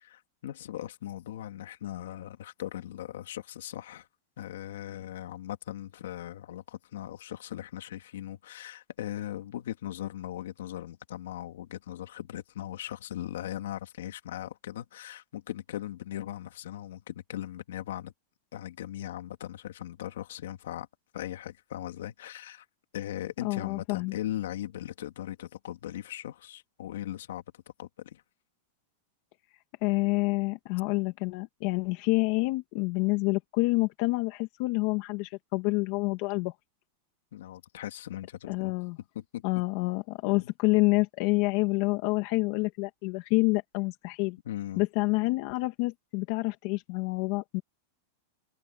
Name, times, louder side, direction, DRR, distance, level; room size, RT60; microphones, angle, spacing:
voice 1, 0.0-4.1 4.4-18.1 18.5-20.9 21.1-22.7 22.9-28.2 37.3-38.7 39.1-39.4 40.2-40.4 44.4-44.8, left 12 dB, 80° left, 2.5 m, -39 dB
voice 2, 23.4-24.1 29.8-36.5 38.5-39.0 39.4-44.4 44.8-47.6, left 25 dB, 45° left, 1.7 m, -28 dB
supercardioid pair, 170°, 0 cm